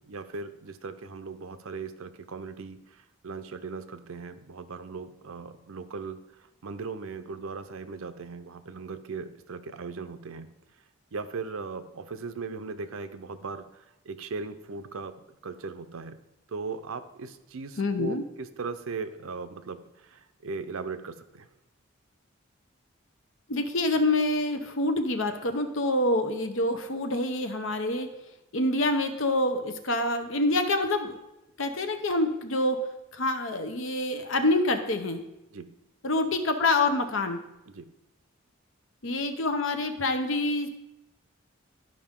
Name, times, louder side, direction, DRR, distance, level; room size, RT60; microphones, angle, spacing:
voice 1, 0.1-6.2 6.6-10.5 11.1-16.2 16.5-21.5 35.5-35.7 37.7-37.9, right 4 dB, 85° right, 10 dB, 0.6 m, -38 dB
voice 2, 17.8-18.2 23.5-28.1 28.5-31.2 31.6-35.2 36.0-37.4 39.0-40.7, left 2 dB, 70° left, 7 dB, 0.8 m, -26 dB
11.5 x 5.0 x 3.7 m, 0.91 s
head